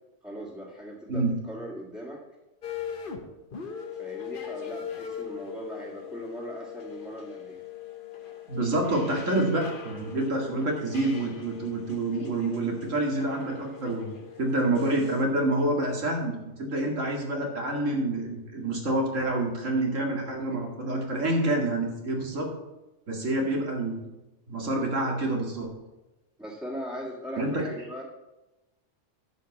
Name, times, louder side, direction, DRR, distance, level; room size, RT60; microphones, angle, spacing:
voice 1, 0.2-2.2 4.0-7.6 26.4-28.0, equal, 5° right, -6 dB, 1.8 m, -39 dB
sound 1, 2.6-3.2 3.5-15.2, left 7 dB, 45° left, 1.2 m, -41 dB
voice 2, 8.5-22.5 23.1-24.1 24.5-25.7 27.4-27.6, right 2 dB, 80° right, 0 dB, 2.4 m, -27 dB
11.0 x 5.0 x 7.2 m, 1.0 s
omnidirectional pair, 1.3 m